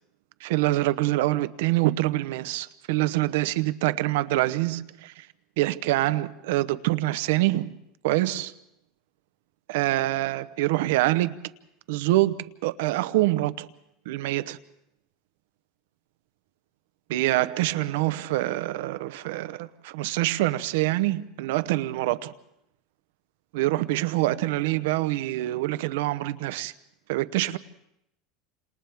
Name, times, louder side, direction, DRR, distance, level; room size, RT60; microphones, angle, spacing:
voice 1, 0.4-5.3 5.6-7.7 8.0-8.5 9.7-11.4 11.9-13.7 14.1-14.6 17.1-22.3 23.5-26.7 27.1-27.6, right 17 dB, 80° right, 0.8 m, -25 dB
29.0 x 27.0 x 3.5 m
supercardioid pair, 165°, 0 cm